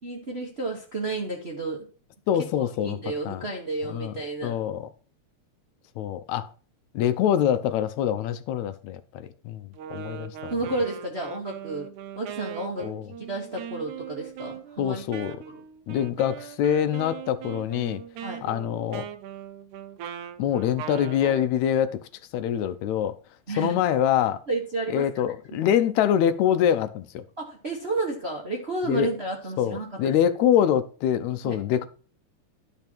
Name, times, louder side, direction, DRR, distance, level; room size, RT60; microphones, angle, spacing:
voice 1, 0.0-1.9 2.6-4.6 10.5-11.9 12.1-12.9 13.2-15.0 15.5-15.6 18.2-18.4 23.5-23.8 24.5-25.2 25.5-25.6 27.4-30.1 31.4-31.6, right 2 dB, 65° right, 0.6 m, -31 dB
voice 2, 2.3-3.0 3.3-3.4 3.9-4.1 4.4-4.9 6.0-6.5 6.9-10.5 12.8-13.1 14.8-15.4 15.9-18.0 18.4-19.1 20.4-22.0 22.3-23.1 23.6-24.4 24.9-27.2 28.9-29.1 29.6-31.9, left 10 dB, 75° left, 1.9 m, -25 dB
Wind instrument woodwind instrument, 9.7-21.5, right 9 dB, 80° right, 2.0 m, -40 dB
11.5 x 5.4 x 4.4 m
omnidirectional pair, 3.5 m